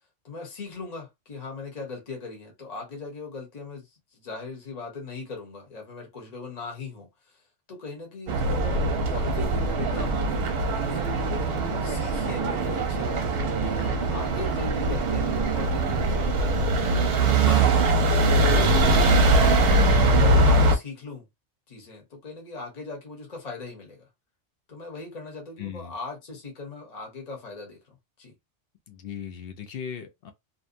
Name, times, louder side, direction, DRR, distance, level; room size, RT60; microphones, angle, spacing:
voice 1, 0.2-7.4 7.7-10.2 10.8-17.8 18.2-19.4 19.7-21.2 21.7-24.1 24.7-28.3, left 3 dB, 40° left, 1.0 m, -39 dB
sound 1, 8.3-20.8, right 2 dB, 60° right, 0.8 m, -22 dB
voice 2, 25.6-25.9 28.9-30.3, left 8 dB, 60° left, 0.7 m, -37 dB
2.7 x 2.2 x 2.5 m
omnidirectional pair, 1.2 m